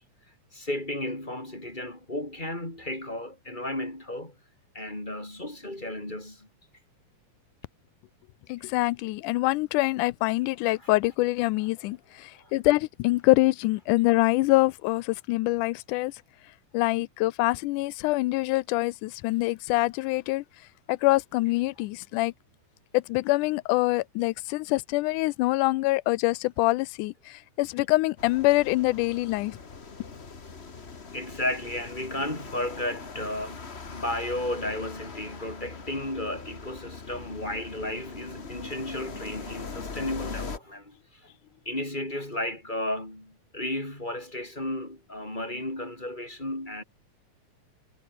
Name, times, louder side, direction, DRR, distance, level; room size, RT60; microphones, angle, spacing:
voice 1, 0.5-4.3 4.7-6.5 10.8-10.9 12.4-12.5 31.1-40.9 41.7-46.8, left 1 dB, 15° left, 5.7 m, -33 dB
voice 2, 8.5-16.1 16.7-20.4 20.9-22.3 22.9-29.6, left 20 dB, 90° left, 2.1 m, -25 dB
sound 1, 28.2-40.6, left 4 dB, 30° left, 1.3 m, -41 dB
omnidirectional pair, 3.5 m